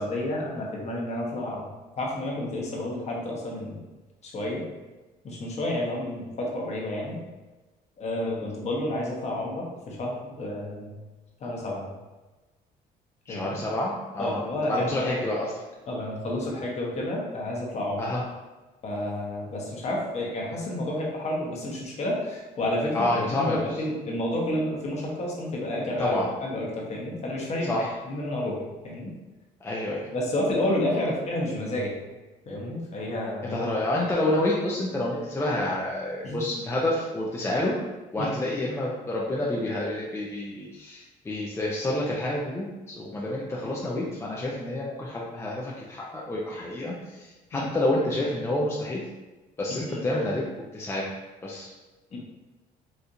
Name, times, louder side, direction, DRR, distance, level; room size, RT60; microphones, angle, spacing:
voice 1, 0.0-1.7 2.0-3.8 4.2-4.6 5.2-7.2 8.0-10.9 11.4-11.9 13.3-13.6 14.2-15.2 15.9-18.0 18.8-26.1 26.4-29.1 30.1-31.9 32.5-33.7 36.2-36.4 38.2-38.3 47.5-47.7 49.9-50.0 52.1-52.2, left 1 dB, 40° left, -2 dB, 0.9 m, -30 dB
voice 2, 13.3-14.4 14.7-15.5 18.0-18.2 22.9-23.8 26.0-26.3 27.6-27.9 29.6-30.1 33.5-37.7 38.1-49.0 49.6-50.4 50.7-51.1 51.4-51.7, left 1 dB, 15° left, -4 dB, 0.5 m, -28 dB
4.2 x 2.5 x 2.5 m, 1.2 s
cardioid pair, 110°, 17 cm